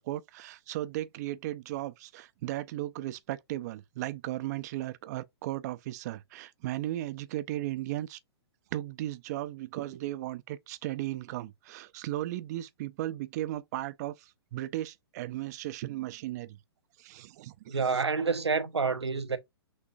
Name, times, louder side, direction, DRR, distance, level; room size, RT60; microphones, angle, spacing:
voice 1, 0.0-8.2 8.7-16.6 17.0-18.0, right 15 dB, 40° right, 0.5 m, -36 dB
voice 2, 17.7-19.4, right 4 dB, 85° right, 0.8 m, -28 dB
6.2 x 2.5 x 2.4 m
figure-of-eight pair, 115°, 14 cm